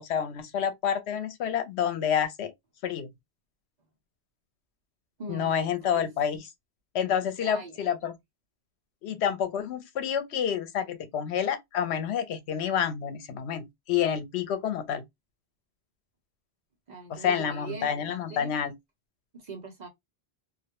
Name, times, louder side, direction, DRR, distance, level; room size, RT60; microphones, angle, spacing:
voice 1, 0.0-2.5 2.8-3.1 5.3-6.4 6.9-8.1 9.0-15.0 17.1-18.7, left 8 dB, 80° left, 0.8 m, -28 dB
voice 2, 5.2-6.1 7.4-7.9 16.9-18.6 19.3-19.9, right 3 dB, 50° right, 0.6 m, -42 dB
2.2 x 2.1 x 2.8 m
omnidirectional pair, 1.1 m